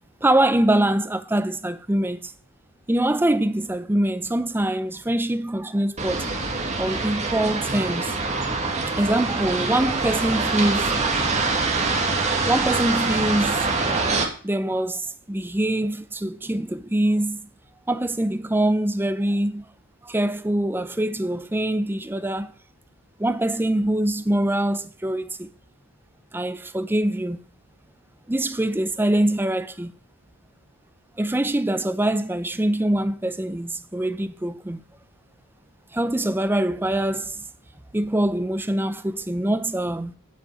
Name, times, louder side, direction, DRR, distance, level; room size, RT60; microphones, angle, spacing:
voice 1, 0.2-2.3 2.9-6.3 6.8-8.2 8.6-11.4 12.4-14.0 14.4-17.4 17.9-19.7 20.0-22.5 23.2-25.5 26.3-27.4 28.3-29.9 31.2-34.8 35.9-37.4 37.9-40.1, right 1 dB, 10° right, 0.5 m, -24 dB
sound 1, 6.0-14.3, right 3 dB, 30° right, 1.6 m, -24 dB
8.4 x 4.9 x 7.6 m
head